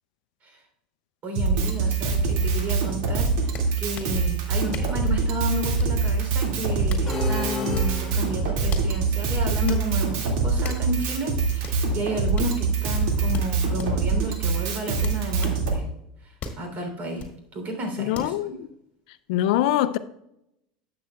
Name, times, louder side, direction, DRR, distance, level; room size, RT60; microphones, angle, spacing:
voice 1, 1.2-15.9 16.2-18.6, equal, 45° right, 3.2 m, -32 dB
Drum kit, 1.3-15.8, right 4 dB, 65° right, 2.1 m, -24 dB
sound 1, 2.7-2.8 3.5-4.2 4.7-5.0 5.8-6.1 6.7-7.1 7.7-8.0 8.7-8.9 9.7-9.9 10.6-10.9 11.6-11.8 12.3-12.5 13.3-13.9 15.0-15.6 16.4-16.6 17.2-17.4 18.1-18.3, left 4 dB, 35° left, 2.1 m, -37 dB
sound 2, 7.1-8.6, left 5 dB, 5° left, 2.9 m, -31 dB
voice 2, 18.0-18.7 19.3-20.0, left 13 dB, 70° left, 0.5 m, -23 dB
12.0 x 7.7 x 2.3 m
hypercardioid pair, 95°, 4 cm